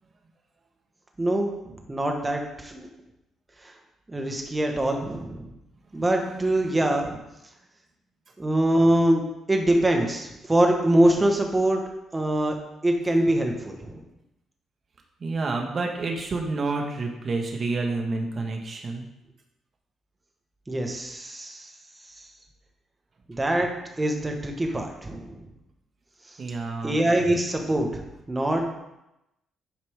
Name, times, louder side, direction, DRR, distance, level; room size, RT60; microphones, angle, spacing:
voice 1, 1.2-2.9 3.6-3.7 4.1-5.5 5.9-7.2 8.4-9.2 9.5-11.8 12.1-12.5 12.8-14.0 20.7-21.7 23.3-23.7 24.0-25.5 26.8-28.6, right 1 dB, 15° right, 2 dB, 1.5 m, -24 dB
voice 2, 5.9-6.4 15.2-19.0 26.4-27.0, right 3 dB, 40° right, 2 dB, 1.6 m, -29 dB
10.5 x 4.9 x 3.7 m, 0.89 s
cardioid pair, 90°, 0 cm